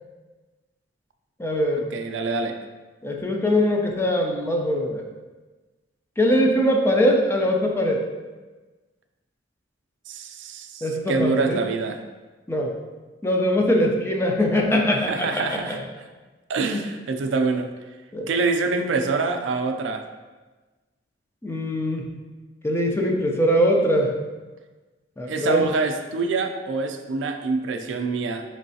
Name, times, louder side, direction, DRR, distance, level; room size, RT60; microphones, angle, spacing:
voice 1, 1.4-1.8 3.0-5.0 6.2-8.0 10.8-11.6 12.5-12.7 13.2-15.8 16.7-16.8 18.1-18.3 21.4-22.1 22.6-24.1 25.2-25.7, equal, 15° left, 0 dB, 0.4 m, -22 dB
voice 2, 1.9-2.6 10.1-12.0 15.1-15.8 16.5-17.7 18.3-20.0 25.3-28.4, right 4 dB, 75° right, 6 dB, 0.4 m, -25 dB
4.5 x 3.1 x 2.7 m, 1.2 s
head